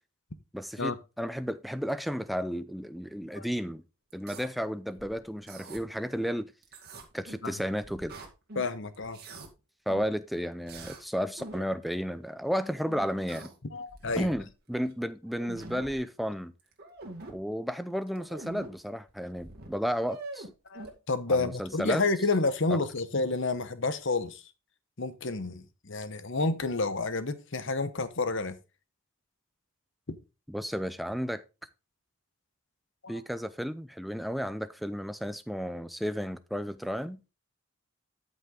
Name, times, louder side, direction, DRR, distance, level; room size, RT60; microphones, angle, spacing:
voice 1, 0.5-3.8 4.1-6.5 7.1-8.2 9.9-13.5 14.2-16.5 17.3-20.5 21.3-22.0 30.5-31.4 33.1-37.2, equal, ahead, 0.4 m, -33 dB
sound 1, 4.1-4.5 5.0-5.8 6.6-7.5 7.8-8.7 8.9-9.5 9.9-10.2 10.7-11.0 11.4-11.7 12.8-13.6 13.9-14.5 14.9-15.0 15.2-16.0 16.6-17.3 18.1-18.7 19.1-19.2 19.3-20.9, right 2 dB, 45° right, 2.3 m, -44 dB
voice 2, 8.5-9.2 13.7-14.3 20.7-24.4 25.0-28.6 30.1-30.2 33.0-33.2, left 3 dB, 55° left, 1.0 m, -30 dB
13.0 x 5.4 x 3.8 m
head